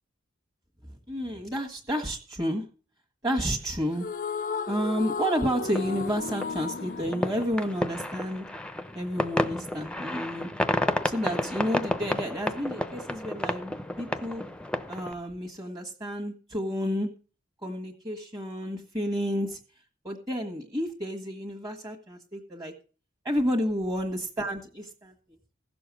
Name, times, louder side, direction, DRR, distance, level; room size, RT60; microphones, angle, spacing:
voice 1, 1.1-2.6 3.2-4.1 4.7-8.4 8.9-10.5 11.0-14.4 14.9-17.1 17.6-19.6 20.0-22.7 23.2-25.1, equal, 20° right, 0 dB, 1.6 m, -30 dB
sound 1, 3.9-8.4, left 4 dB, 40° left, 0.6 m, -34 dB
sound 2, 5.6-15.1, left 1 dB, 5° left, 0.7 m, -31 dB
16.0 x 7.0 x 6.2 m, 0.37 s
head